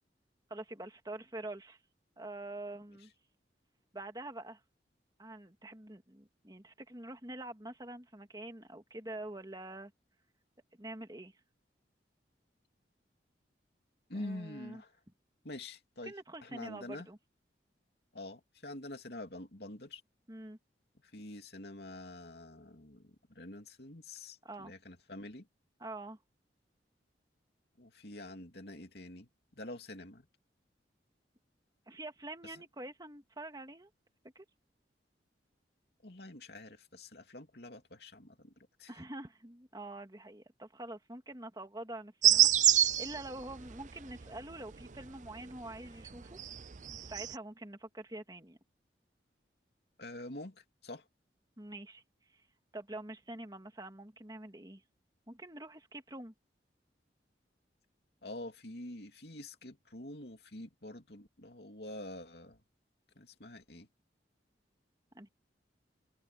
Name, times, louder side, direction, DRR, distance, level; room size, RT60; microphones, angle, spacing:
voice 1, 0.5-1.8 2.2-3.1 3.9-4.6 5.2-9.9 10.8-11.3 14.1-14.8 16.1-17.2 20.3-20.6 24.4-24.7 25.8-26.2 31.9-33.9 34.4-34.5 38.9-46.4 47.1-48.6 51.6-52.0 52.3-52.4 52.7-54.8 55.3-56.3 65.1-65.3, right 2 dB, 20° right, 2.2 m, -46 dB
voice 2, 14.1-14.9 15.4-16.1 16.4-17.1 18.1-20.0 21.1-25.5 27.8-30.3 32.4-32.6 36.0-38.9 50.0-51.1 58.2-62.6 63.1-63.9, left 1 dB, 60° left, 2.9 m, -46 dB
sound 1, 42.2-45.4 45.7-47.4, right 11 dB, 45° right, 0.6 m, -27 dB
head